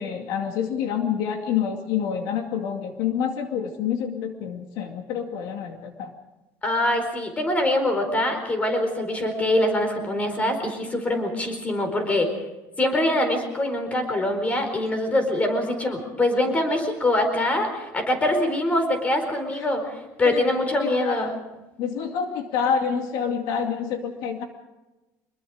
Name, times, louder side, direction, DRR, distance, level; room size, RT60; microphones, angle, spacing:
voice 1, 0.0-6.1 19.5-19.7 20.2-20.4 20.8-21.3 21.8-24.4, left 7 dB, 70° left, 4 dB, 2.4 m, -27 dB
voice 2, 6.6-12.3 12.8-21.3, left 1 dB, 20° left, 7 dB, 4.4 m, -24 dB
25.5 x 21.5 x 5.0 m, 1.1 s
cardioid pair, 150°, 7 cm